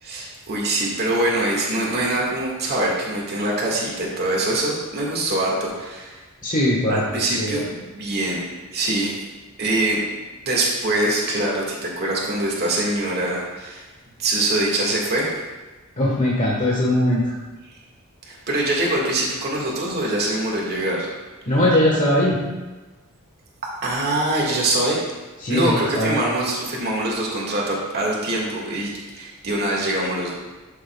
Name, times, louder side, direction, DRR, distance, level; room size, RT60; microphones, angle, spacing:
voice 1, 0.0-6.2 6.9-8.4 8.7-9.2 9.6-10.0 10.4-13.9 14.2-15.3 18.3-21.1 23.8-25.0 25.5-30.3, right 1 dB, 45° right, -3 dB, 1.8 m, -23 dB
voice 2, 6.4-7.7 16.0-17.3 21.5-22.4 25.4-26.2, left 1 dB, 35° left, -6 dB, 1.3 m, -20 dB
11.0 x 7.0 x 2.3 m, 1.2 s
head